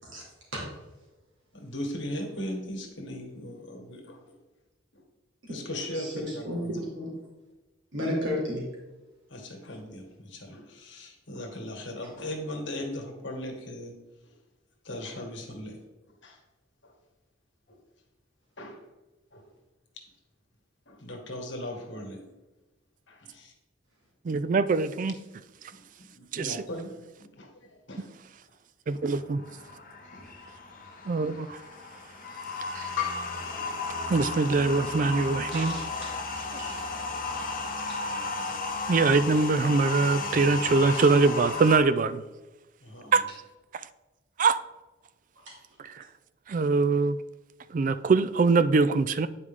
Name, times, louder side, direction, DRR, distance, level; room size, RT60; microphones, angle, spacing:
voice 1, 1.5-4.4 4.9-5.0 5.5-6.7 9.3-14.0 14.3-14.4 14.8-15.8 16.1-16.4 16.8-16.9 17.7-17.8 18.6-18.8 19.3-19.5 20.8-22.2 23.1-23.5 25.7-25.8 26.1-26.9 27.2-28.1 30.1-30.2 33.0-33.4 42.8-43.2, left 2 dB, 70° left, 1.7 m, -38 dB
voice 2, 5.9-7.1 7.9-8.6 35.5-36.9 37.3-37.4 37.9-38.0 45.5-45.6, equal, 70° right, 2.7 m, -34 dB
voice 3, 24.2-25.1 26.3-26.6 28.9-29.4 31.1-31.6 32.7-32.9 34.1-35.8 38.9-42.2 43.1-43.2 44.4-44.6 45.8-46.0 46.5-47.2 47.7-49.3, right 4 dB, 40° right, 0.3 m, -23 dB
sound 1, 29.0-41.8, left 3 dB, 45° left, 1.0 m, -34 dB
9.7 x 4.8 x 3.6 m
head